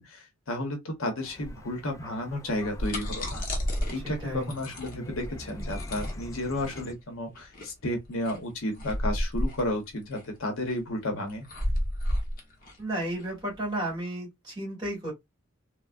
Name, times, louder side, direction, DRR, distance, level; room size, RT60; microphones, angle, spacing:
voice 1, 0.0-3.5 3.9-11.5, left 1 dB, 80° left, 1.0 m, -32 dB
sound 1, 1.2-6.9, left 1 dB, 15° left, 0.3 m, -43 dB
sound 2, 2.6-13.9, equal, 40° left, 0.9 m, -33 dB
voice 2, 4.0-4.5 12.8-15.1, right 1 dB, 20° right, 2.0 m, -33 dB
3.3 x 2.2 x 2.4 m
head